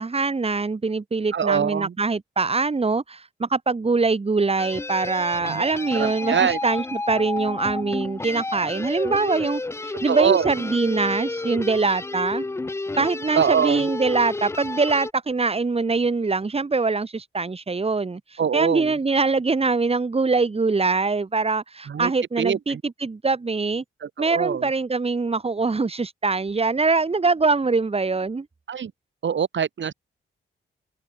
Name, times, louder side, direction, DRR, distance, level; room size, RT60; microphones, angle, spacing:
voice 1, 0.0-12.4 13.0-18.2 18.5-23.8 24.2-28.5, right 4 dB, 30° right, 1.3 m, -23 dB
voice 2, 1.3-1.9 5.5-5.7 5.9-6.6 10.1-10.5 13.3-13.9 18.4-18.9 21.9-22.1 22.4-22.8 24.0-24.7 28.7-28.9 29.2-29.9, right 7 dB, 60° right, 1.8 m, -23 dB
sound 1, 4.6-15.1, left 2 dB, 15° left, 0.4 m, -31 dB
open air
cardioid pair, 75°, 21 cm